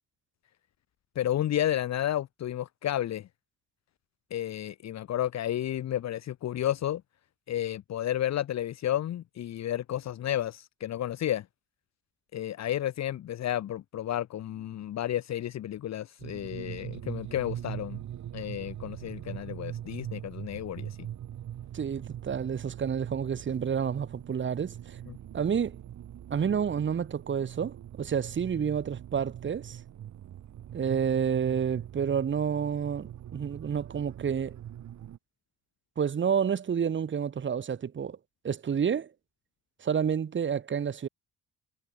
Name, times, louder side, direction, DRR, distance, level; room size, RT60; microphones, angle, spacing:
voice 1, 1.1-3.3 4.3-7.0 7.5-11.4 12.3-18.0 18.3-21.0 25.1-25.2, left 12 dB, 60° left, 1.1 m, -32 dB
sound 1, 16.2-35.2, right 11 dB, 70° right, 6.1 m, -42 dB
voice 2, 21.7-25.0 25.3-25.8 26.3-29.8 30.7-34.6 36.0-38.2 38.4-39.1 39.8-41.1, right 7 dB, 40° right, 1.4 m, -29 dB
cardioid pair, 90°, 30 cm